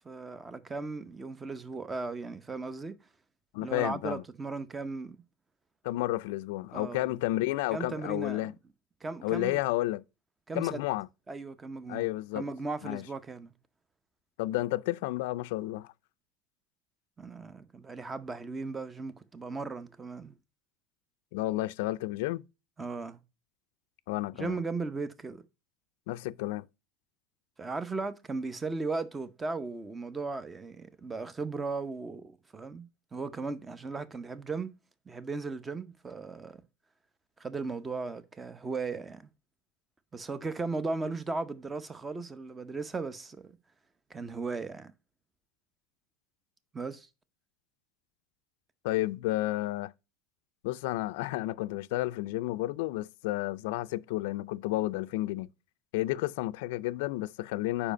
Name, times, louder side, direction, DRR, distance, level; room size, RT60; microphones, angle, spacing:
voice 1, 0.0-2.9 3.6-5.2 6.7-7.1 7.7-8.4 9.0-9.6 10.5-10.8 11.3-12.1 12.3-13.5 17.2-20.3 22.8-23.2 24.3-25.4 27.6-34.7 35.1-36.6 37.4-39.2 40.1-43.6 44.1-44.9 46.7-47.1, right 3 dB, 20° right, 0.7 m, -37 dB
voice 2, 3.5-4.2 5.8-8.5 9.2-10.0 10.5-11.1 11.9-12.4 12.8-13.0 14.4-15.9 21.3-22.4 24.1-24.6 26.1-26.7 48.8-49.9 50.6-55.5 55.9-57.9, left 17 dB, 75° left, 0.3 m, -31 dB
5.0 x 4.9 x 5.0 m
supercardioid pair, 110°, 0 cm